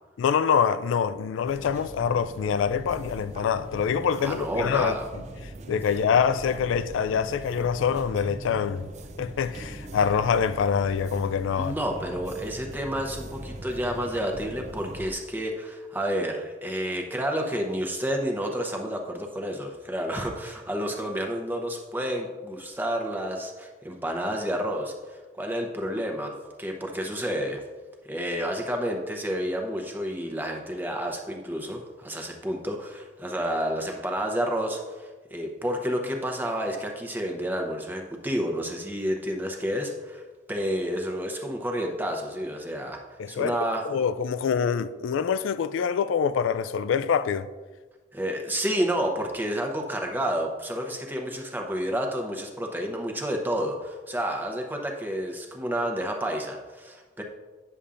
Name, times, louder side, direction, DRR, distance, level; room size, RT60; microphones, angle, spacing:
voice 1, 0.2-4.9 5.7-8.9 9.2-11.7 43.2-43.5 43.9-47.5, left 7 dB, 90° left, 0.3 m, -25 dB
sound 1, 1.5-15.1, right 1 dB, 35° right, 0.4 m, -41 dB
voice 2, 4.2-5.1 11.6-27.6 28.1-40.2 40.5-43.0 43.3-43.8 48.1-57.2, equal, 10° right, 0.8 m, -30 dB
9.8 x 6.9 x 2.5 m
head